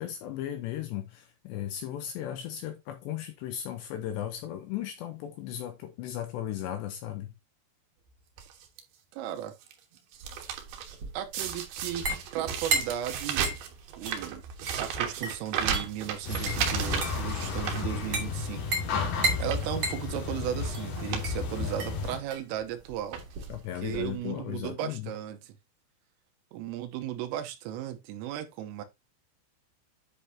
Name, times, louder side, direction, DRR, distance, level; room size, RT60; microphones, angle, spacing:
voice 1, 0.0-7.3 23.5-25.1, left 11 dB, 75° left, 2.6 m, -36 dB
sound 1, 8.4-8.8 9.4-9.7 10.0-11.0 11.3-18.4 18.8-18.9 19.4-19.7 20.6-20.7 20.9-21.3 21.6-21.7 22.6-22.8 23.1-23.6 24.4-24.5 24.6-24.7, right 7 dB, 65° right, 2.7 m, -34 dB
voice 2, 9.1-9.6 11.1-12.1 12.3-13.6 14.0-14.4 14.8-18.6 19.0-23.2 23.8-25.6 26.5-28.8, right 11 dB, 80° right, 3.5 m, -36 dB
sound 2, 10.2-24.2, right 2 dB, 40° right, 2.3 m, -36 dB
sound 3, 16.2-22.2, left 4 dB, 55° left, 3.1 m, -33 dB
10.5 x 5.5 x 2.8 m
omnidirectional pair, 5.8 m